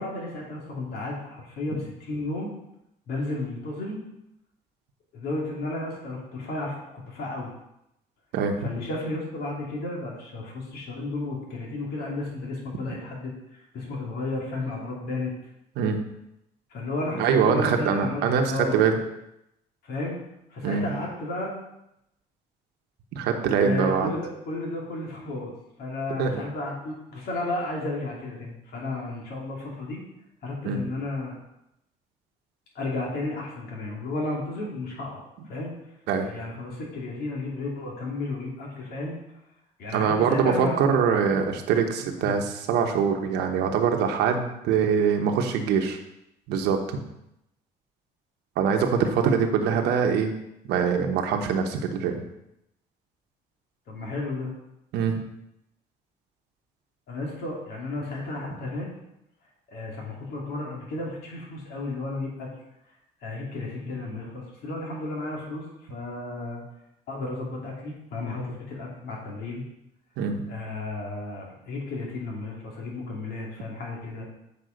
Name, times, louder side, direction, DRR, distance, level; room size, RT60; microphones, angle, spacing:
voice 1, 0.0-2.5 3.1-4.0 5.1-7.5 8.6-15.3 16.7-18.8 19.8-20.2 20.5-21.5 23.6-25.5 25.8-30.0 30.4-31.4 32.7-35.7 36.2-39.2 39.8-41.0 42.2-42.4 48.9-49.2 53.9-54.5 57.1-58.9 59.7-62.5 63.2-66.6 67.1-69.6 70.5-74.3, left 2 dB, 70° left, -3 dB, 2.7 m, -33 dB
voice 2, 8.3-8.7 15.8-16.0 17.2-19.0 20.6-20.8 23.1-24.1 26.2-26.4 30.6-30.8 36.1-36.3 39.9-46.0 46.5-47.0 48.6-50.3 50.7-52.2 54.9-55.2 70.2-70.4, right 6 dB, 85° right, 4 dB, 1.1 m, -23 dB
8.0 x 5.3 x 5.1 m, 0.84 s
cardioid pair, 110°, 17 cm